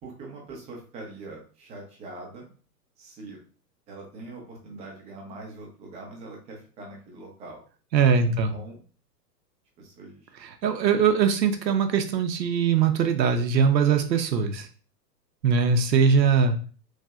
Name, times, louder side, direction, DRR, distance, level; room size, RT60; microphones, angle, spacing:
voice 1, 0.0-2.5 3.0-3.4 3.9-7.6 8.1-8.8 9.8-10.3 15.6-15.7, right 2 dB, 15° right, -1 dB, 0.4 m, -43 dB
voice 2, 7.9-8.5 10.4-14.7 15.4-16.6, right 6 dB, 90° right, 6 dB, 0.6 m, -21 dB
3.2 x 2.5 x 2.3 m, 0.40 s
hypercardioid pair, 110°, 49 cm